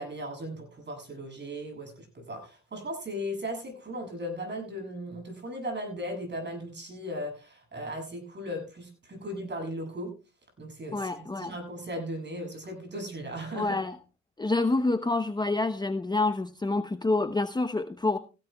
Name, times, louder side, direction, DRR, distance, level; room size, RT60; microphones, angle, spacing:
voice 1, 0.0-10.1 10.6-13.8, equal, 35° right, 3 dB, 7.4 m, -37 dB
voice 2, 10.9-11.5 13.6-14.0 14.4-18.2, left 2 dB, 15° left, 9 dB, 0.8 m, -27 dB
17.0 x 16.0 x 2.3 m, 0.31 s
cardioid pair, 90°, 30 cm